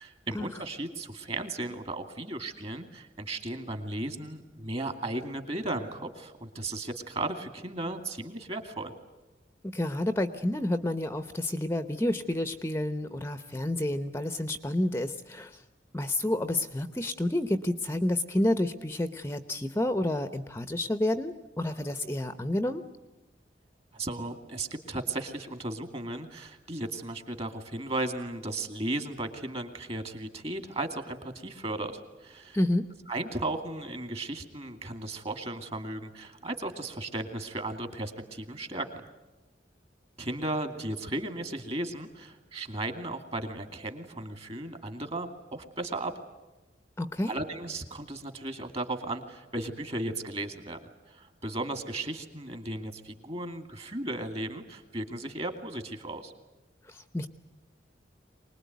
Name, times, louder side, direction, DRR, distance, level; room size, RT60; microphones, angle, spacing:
voice 1, 0.0-8.9 23.9-32.6 33.1-38.9 40.2-46.1 47.3-50.8 51.1-56.3, right 2 dB, 35° right, 7 dB, 2.4 m, -35 dB
voice 2, 9.6-15.6 15.9-22.8 32.5-32.9 47.0-47.3 56.9-57.3, left 1 dB, 15° left, 10 dB, 0.8 m, -29 dB
24.5 x 20.0 x 9.4 m, 1.1 s
head